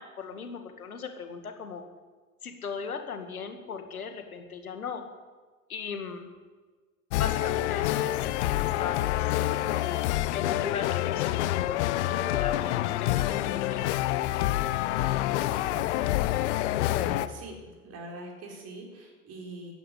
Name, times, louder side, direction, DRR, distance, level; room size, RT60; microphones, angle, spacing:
voice 1, 0.0-1.8 2.4-5.0 5.7-6.3 7.1-10.0 10.3-14.0, left 6 dB, 75° left, 6 dB, 2.2 m, -38 dB
sound 1, 7.1-17.3, left 15 dB, 50° left, 0.8 m, -27 dB
voice 2, 15.7-16.6 16.8-17.6 17.8-19.7, right 2 dB, 35° right, 0 dB, 4.6 m, -43 dB
14.5 x 10.5 x 8.3 m, 1.4 s
figure-of-eight pair, 80°, 44 cm